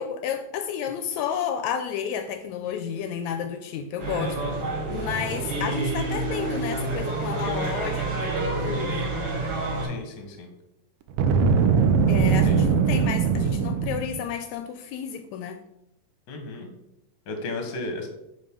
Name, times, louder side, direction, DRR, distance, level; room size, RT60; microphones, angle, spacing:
voice 1, 0.0-4.4 4.9-9.2 12.1-15.6, left 8 dB, 80° left, 8 dB, 1.9 m, -31 dB
sound 1, 4.0-9.9, right 2 dB, 60° right, 3.8 m, -28 dB
voice 2, 9.8-10.5 12.4-12.6 16.3-16.7 17.3-18.1, left 2 dB, 50° left, 4 dB, 1.4 m, -34 dB
Boom, 11.1-14.2, right 5 dB, 85° right, 1.3 m, -21 dB
9.8 x 4.3 x 3.7 m, 0.84 s
omnidirectional pair, 3.4 m